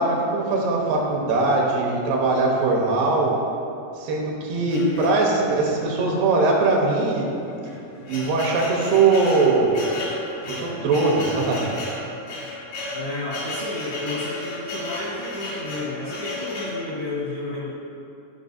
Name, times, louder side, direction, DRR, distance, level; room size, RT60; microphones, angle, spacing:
voice 1, 0.0-3.4 4.0-7.2 8.1-9.8 10.5-11.7, right 3 dB, 80° right, -1 dB, 2.9 m, -21 dB
sound 1, 4.7-5.6 6.3-6.4 6.7-6.8 7.5-16.8, left 2 dB, 90° left, 4.0 m, -33 dB
voice 2, 12.9-17.7, left 2 dB, 75° left, -10 dB, 1.1 m, -32 dB
11.0 x 5.6 x 2.7 m, 2.8 s
omnidirectional pair, 4.7 m